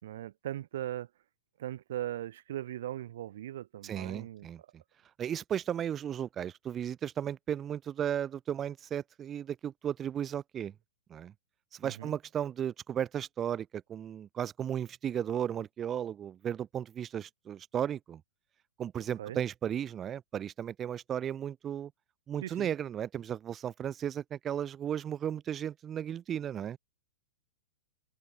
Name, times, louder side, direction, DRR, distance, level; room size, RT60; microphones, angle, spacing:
voice 1, 0.0-1.1 1.6-4.5 11.8-12.1 19.2-19.4 22.4-22.7, right 12 dB, 65° right, 2.4 m, -39 dB
voice 2, 3.8-4.6 5.2-10.7 11.1-11.3 11.7-18.2 18.8-21.9 22.3-26.8, right 9 dB, 20° right, 0.6 m, -35 dB
hypercardioid pair, 135°, 0 cm